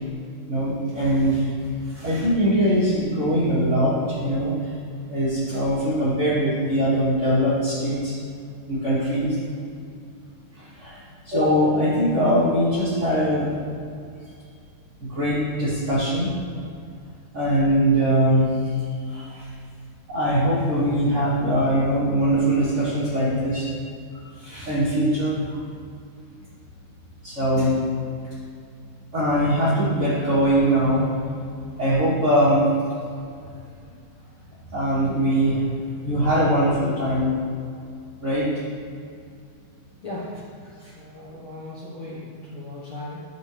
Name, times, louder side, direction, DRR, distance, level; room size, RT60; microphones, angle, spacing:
voice 1, 0.5-1.5 1.9-4.7 5.1-8.1 8.7-9.4 10.5-13.5 15.0-16.3 17.3-18.4 19.1-19.5 20.1-23.7 24.4-25.6 27.2-27.8 29.1-31.1 31.8-32.7 34.7-35.6 36.0-37.3 38.2-38.5 40.8-40.9, equal, 25° right, -13 dB, 1.6 m, -22 dB
voice 2, 40.0-43.2, left 1 dB, 55° left, -9 dB, 1.5 m, -37 dB
14.5 x 5.3 x 3.4 m, 2.4 s
omnidirectional pair, 4.5 m